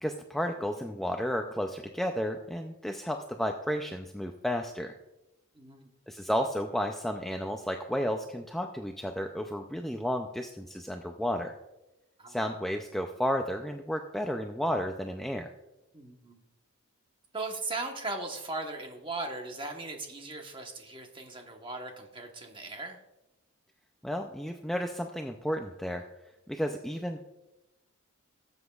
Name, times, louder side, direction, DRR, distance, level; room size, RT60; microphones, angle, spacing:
voice 1, 0.0-4.9 6.1-11.5 12.3-15.5 24.0-26.0 26.5-27.2, equal, ahead, 3 dB, 0.3 m, -32 dB
voice 2, 15.9-16.4 17.3-23.0, right 3 dB, 25° right, 3 dB, 1.1 m, -38 dB
18.0 x 8.0 x 2.4 m, 0.97 s
head